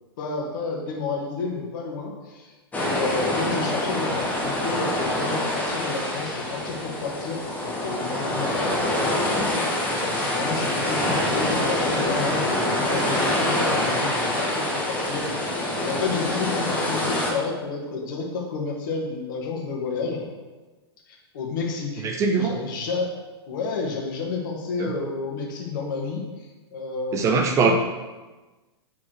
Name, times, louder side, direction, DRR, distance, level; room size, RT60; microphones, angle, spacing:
voice 1, 0.2-9.6 9.9-15.5 15.8-20.3 21.1-23.1 23.5-27.7, left 4 dB, 50° left, -1 dB, 1.9 m, -31 dB
sound 1, 2.7-17.3, left 1 dB, 10° left, 1.7 m, -25 dB
voice 2, 22.0-22.5 24.8-24.9 27.1-27.7, right 5 dB, 20° right, 3 dB, 0.7 m, -21 dB
6.4 x 4.8 x 6.4 m, 1.2 s
figure-of-eight pair, 100°, 14 cm